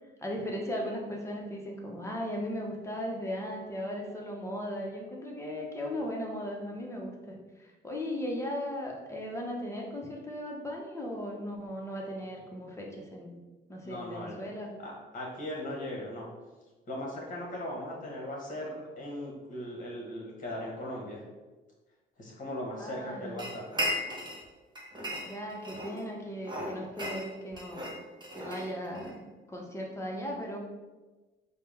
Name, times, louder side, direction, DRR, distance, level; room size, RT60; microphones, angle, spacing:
voice 1, 0.2-13.4 13.7-14.7 22.8-23.4 25.3-27.9 28.3-30.6, equal, 15° left, -1 dB, 0.9 m, -37 dB
voice 2, 13.8-14.4 14.8-16.3 16.9-21.2 22.2-23.7, left 1 dB, 40° left, -3 dB, 1.4 m, -38 dB
sound 1, 23.4-24.4 24.8-26.0 26.4-29.1, equal, 25° right, 0.9 m, -36 dB
4.6 x 2.2 x 3.4 m, 1.2 s
cardioid pair, 90°, 20 cm